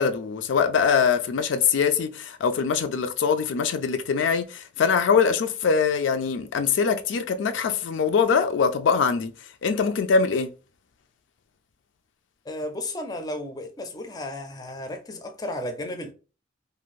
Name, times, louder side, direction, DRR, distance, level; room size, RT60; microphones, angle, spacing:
voice 1, 0.0-9.3 9.6-10.5, left 6 dB, 85° left, 0.4 m, -23 dB
voice 2, 12.5-16.1, left 1 dB, 20° left, 0.4 m, -33 dB
2.5 x 2.5 x 3.1 m
head